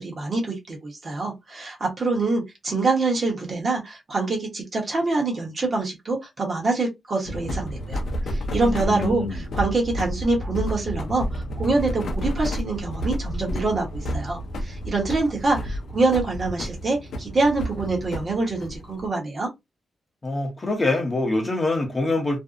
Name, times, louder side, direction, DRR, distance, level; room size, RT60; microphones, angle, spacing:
voice 1, 0.0-19.5, right 3 dB, 35° right, 0.9 m, -25 dB
sound 1, 7.2-19.1, equal, 60° left, 0.5 m, -31 dB
voice 2, 8.6-9.4 20.2-22.4, left 2 dB, 25° left, 0.7 m, -25 dB
2.5 x 2.0 x 2.4 m
wide cardioid pair, 140°, 0 cm